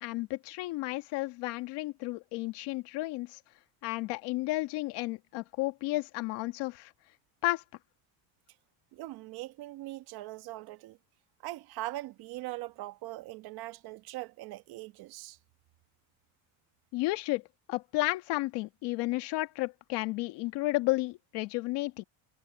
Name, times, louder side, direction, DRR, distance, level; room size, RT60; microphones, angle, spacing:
voice 1, 0.0-3.4 3.8-6.9 7.4-7.6 16.9-17.4 17.7-22.0, left 20 dB, 70° left, 1.7 m, -32 dB
voice 2, 8.9-11.0 11.4-15.4, right 17 dB, 60° right, 1.5 m, -41 dB
cardioid pair, 145°, 43 cm